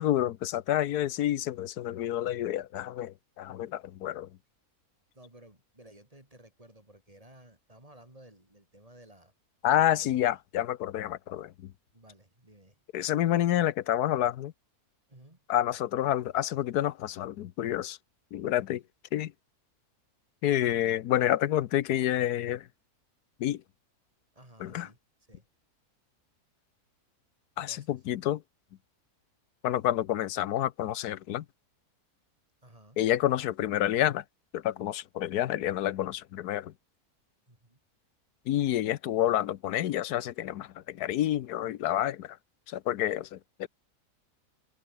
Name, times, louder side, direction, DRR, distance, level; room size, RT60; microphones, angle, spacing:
voice 1, 0.0-4.3 9.6-11.7 12.9-14.5 15.5-18.0 18.3-18.8 19.1-19.3 20.4-22.6 23.4-23.6 24.6-24.9 27.6-28.4 29.6-31.4 33.0-34.2 34.5-36.7 38.5-42.4 42.7-43.7, left 12 dB, 85° left, 1.3 m, -28 dB
voice 2, 5.1-9.3 9.6-10.4 11.9-12.8 15.1-15.4 20.6-20.9 24.3-25.0 25.3-25.5 27.6-28.0 32.6-33.0 37.5-37.8, right 1 dB, 20° right, 4.2 m, -55 dB
omnidirectional pair, 1.6 m